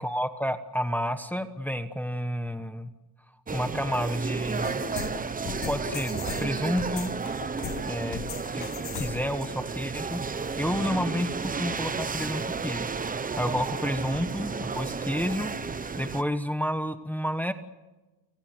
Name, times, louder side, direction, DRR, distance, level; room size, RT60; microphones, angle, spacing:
voice 1, 0.0-2.9 3.5-4.8 5.7-7.1 7.8-8.2 8.5-8.7 8.9-10.2 10.6-15.5 16.0-17.5, equal, 5° left, 9 dB, 1.2 m, -30 dB
sound 1, 3.5-16.2, right 5 dB, 20° right, 1.0 m, -32 dB
sound 2, 4.6-9.4, left 10 dB, 75° left, 1.2 m, -38 dB
29.5 x 18.0 x 8.0 m, 1.1 s
cardioid pair, 145°, 39 cm